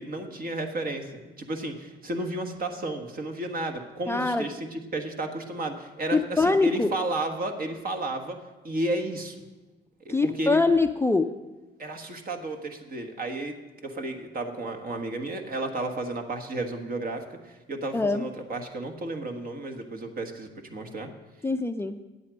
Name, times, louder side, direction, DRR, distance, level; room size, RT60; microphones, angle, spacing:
voice 1, 0.0-8.4 8.6-9.4 10.0-10.6 11.8-13.5 13.8-21.1, right 2 dB, 45° right, 5 dB, 1.5 m, -32 dB
voice 2, 4.1-4.5 6.1-6.9 10.1-11.3 17.9-18.3 21.4-22.0, left 3 dB, 10° left, 8 dB, 0.4 m, -23 dB
9.6 x 8.5 x 6.3 m, 1.2 s
cardioid pair, 90°, 20 cm